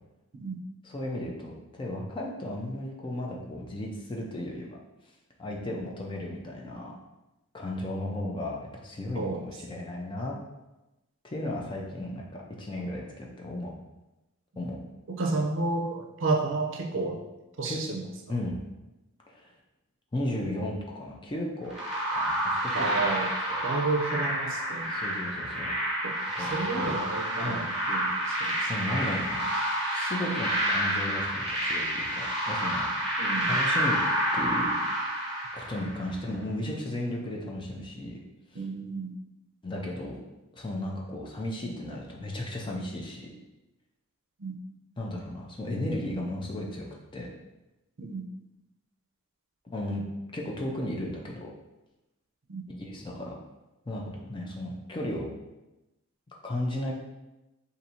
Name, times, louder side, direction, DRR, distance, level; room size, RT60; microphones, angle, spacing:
voice 1, 0.8-4.8 5.4-6.9 7.5-10.3 11.2-13.7 14.6-14.8 17.6-17.8 18.3-18.6 19.3-19.5 20.1-21.7 22.1-23.0 23.5-23.6 24.9-25.7 26.3-26.9 27.4-27.7 28.6-29.5 29.9-32.9 33.4-34.0 34.3-34.7 35.5-38.2 38.5-38.6 39.6-40.2 40.5-43.3 45.0-46.9 47.1-47.3 49.6-50.0 50.3-51.5 52.8-53.4 53.9-55.3 56.4-56.9, left 1 dB, 25° left, -1 dB, 0.5 m, -35 dB
voice 2, 15.1-17.2 17.6-18.0 22.7-23.3 23.6-24.9 26.0-28.7 30.2-30.4 33.2-33.5 36.1-36.3 38.5-39.1 44.4-44.5 48.0-48.2 52.5-52.6, right 3 dB, 60° right, 1 dB, 0.5 m, -31 dB
sound 1, 21.7-36.1, right 1 dB, ahead, 1.0 m, -29 dB
2.7 x 2.6 x 4.2 m, 1.0 s
head